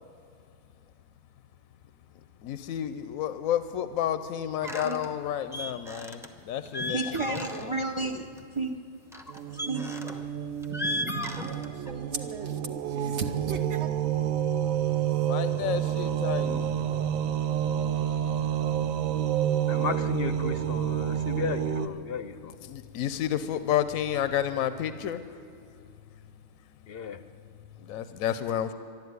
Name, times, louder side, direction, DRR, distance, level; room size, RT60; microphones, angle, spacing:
voice 1, 2.4-7.8 15.3-16.8 17.5-17.6 22.6-25.2 27.8-28.7, left 10 dB, 85° left, 12 dB, 1.1 m, -31 dB
sound 1, 4.6-5.1 5.5-6.3 6.6-7.8 8.1-8.4 9.1-10.2 10.6-11.9, left 1 dB, ahead, 0.8 m, -35 dB
voice 2, 6.9-8.8 9.5-10.0, right 3 dB, 35° right, 4 dB, 0.5 m, -32 dB
sound 2, 9.3-21.9, right 10 dB, 80° right, 1.1 m, -29 dB
voice 3, 11.3-13.9, right 5 dB, 60° right, 6 dB, 1.0 m, -37 dB
voice 4, 19.7-22.6 26.9-27.2, left 6 dB, 55° left, 11 dB, 0.7 m, -34 dB
12.0 x 12.0 x 9.3 m, 2.6 s
omnidirectional pair, 1.4 m